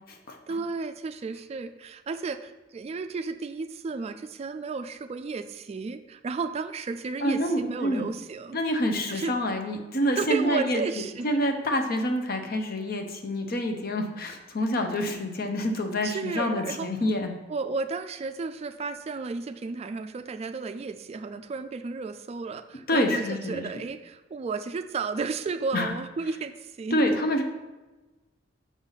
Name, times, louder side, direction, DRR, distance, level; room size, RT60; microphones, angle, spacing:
voice 1, 0.5-8.6 9.1-9.4 10.2-11.3 16.0-16.9 17.5-27.0, right 4 dB, 35° right, 10 dB, 0.3 m, -33 dB
voice 2, 7.2-8.0 8.5-10.8 11.2-17.3 22.9-23.7 25.7-26.0 26.9-27.4, left 1 dB, 55° left, 5 dB, 0.8 m, -27 dB
6.1 x 5.6 x 4.0 m, 1.1 s
head